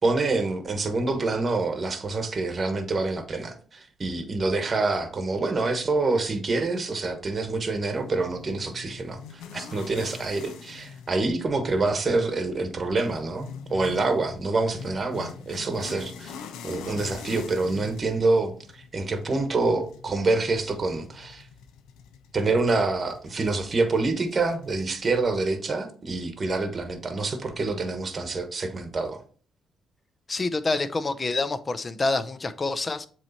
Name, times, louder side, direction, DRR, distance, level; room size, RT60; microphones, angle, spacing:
voice 1, 0.0-16.3 16.6-21.5 22.3-29.2, right 3 dB, 35° right, 1.1 m, -26 dB
sound 1, 7.9-25.2, left 7 dB, 90° left, 0.7 m, -44 dB
voice 2, 30.3-33.1, left 3 dB, 30° left, 0.6 m, -27 dB
7.4 x 3.2 x 4.1 m
cardioid pair, 90°, 0 cm